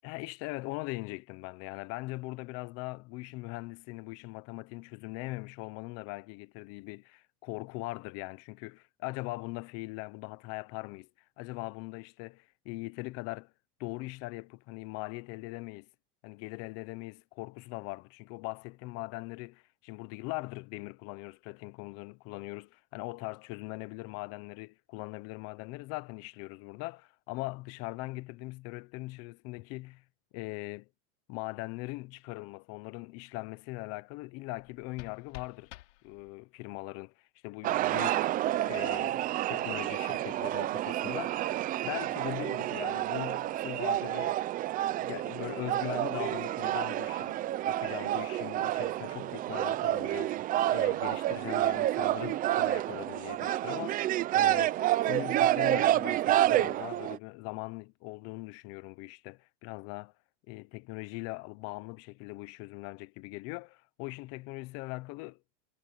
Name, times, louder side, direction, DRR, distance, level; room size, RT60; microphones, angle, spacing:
voice 1, 0.0-11.1 11.4-13.5 13.8-15.9 16.2-30.0 30.3-30.9 31.3-35.7 36.0-38.3 38.6-41.5 41.8-44.4 45.0-47.4 47.7-50.4 50.7-54.8 55.0-60.1 60.5-65.4, left 23 dB, 45° left, 1.0 m, -41 dB
sound 1, 34.5-36.6, left 17 dB, 80° left, 5.9 m, -51 dB
sound 2, 37.6-57.2, right 13 dB, 25° right, 0.6 m, -29 dB
supercardioid pair, 155°, 34 cm